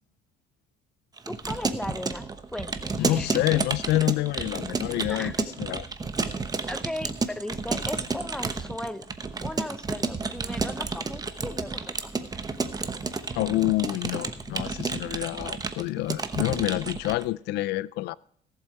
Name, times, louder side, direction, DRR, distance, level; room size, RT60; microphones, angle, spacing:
Keyboard (musical) / Computer keyboard, 1.2-17.3, right 4 dB, 20° right, 1.0 m, -31 dB
voice 1, 1.3-3.6 5.1-5.4 6.7-9.1 9.4-12.2, left 1 dB, 5° left, 0.7 m, -37 dB
voice 2, 3.0-5.3 5.6-5.9 13.4-18.2, left 17 dB, 80° left, 0.4 m, -27 dB
17.5 x 7.7 x 4.7 m
cardioid pair, 110°, 17 cm